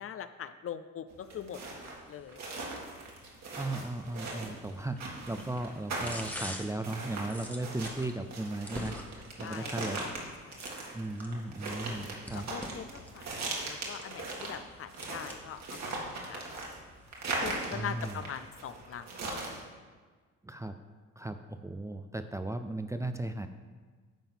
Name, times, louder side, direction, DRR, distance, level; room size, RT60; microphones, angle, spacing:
voice 1, 0.0-2.5 9.4-10.2 10.5-10.7 11.3-11.4 12.0-16.4 17.4-19.1, left 8 dB, 50° left, 11 dB, 0.5 m, -43 dB
sound 1, 1.1-19.6, right 2 dB, 60° right, 2.1 m, -39 dB
sound 2, 2.0-17.9, left 1 dB, 5° left, 1.0 m, -49 dB
voice 2, 3.6-8.9 9.4-10.0 10.9-12.5 17.7-18.2 20.4-20.8 21.2-23.5, right 2 dB, 10° right, 8 dB, 0.4 m, -36 dB
10.0 x 3.8 x 7.2 m, 1.5 s
cardioid pair, 90°, 30 cm